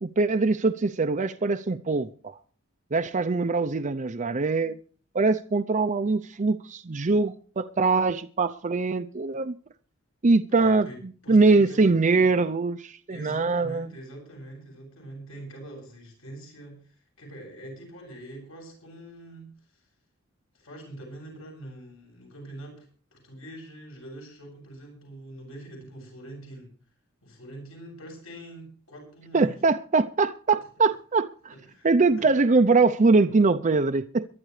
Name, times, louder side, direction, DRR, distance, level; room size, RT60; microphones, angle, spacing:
voice 1, 0.0-2.3 2.9-4.8 5.1-9.5 10.2-10.9 11.3-13.9 29.3-31.3 31.8-34.3, right 3 dB, 35° right, 0.6 m, -22 dB
voice 2, 10.5-12.3 13.1-19.9 20.5-26.7 27.2-29.6 31.6-32.3, right 1 dB, 75° left, 7.6 m, -44 dB
22.5 x 12.0 x 3.2 m
head